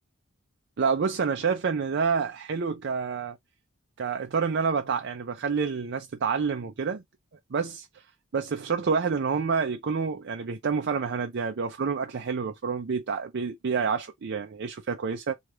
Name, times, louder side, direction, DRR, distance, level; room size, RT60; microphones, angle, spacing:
voice 1, 0.8-3.4 4.0-7.0 7.5-8.0 8.3-15.3, right 5 dB, 55° right, 0.5 m, -28 dB
4.7 x 2.4 x 3.0 m
head